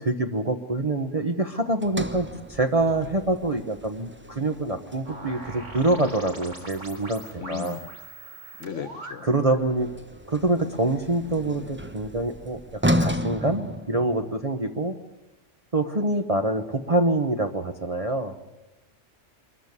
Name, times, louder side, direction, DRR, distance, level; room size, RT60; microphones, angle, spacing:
voice 1, 0.0-7.8 9.2-9.9 10.3-15.0 15.7-18.3, right 2 dB, 30° right, 4 dB, 1.1 m, -25 dB
Sliding door, 1.8-6.1 9.5-14.5, equal, 10° right, 0.9 m, -32 dB
sound 1, 5.0-9.6, right 1 dB, 75° right, 4.0 m, -41 dB
voice 2, 7.4-7.9 8.6-9.3, left 8 dB, 75° left, 13 dB, 1.3 m, -36 dB
23.5 x 14.0 x 9.6 m, 1.0 s
omnidirectional pair, 1.3 m